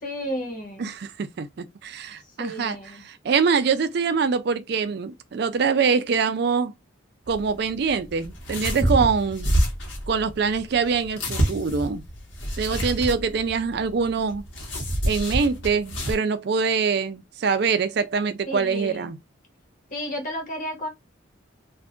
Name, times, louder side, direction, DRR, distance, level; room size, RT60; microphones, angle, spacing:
voice 1, 0.0-0.9 2.4-3.0 18.5-19.1 19.9-20.9, equal, 40° left, 1.3 m, -32 dB
voice 2, 0.8-6.7 7.3-9.5 10.1-12.0 12.6-14.4 15.1-19.2, right 5 dB, 55° right, 0.4 m, -24 dB
sound 1, 7.2-16.1, equal, 65° left, 1.3 m, -28 dB
2.5 x 2.4 x 3.6 m
head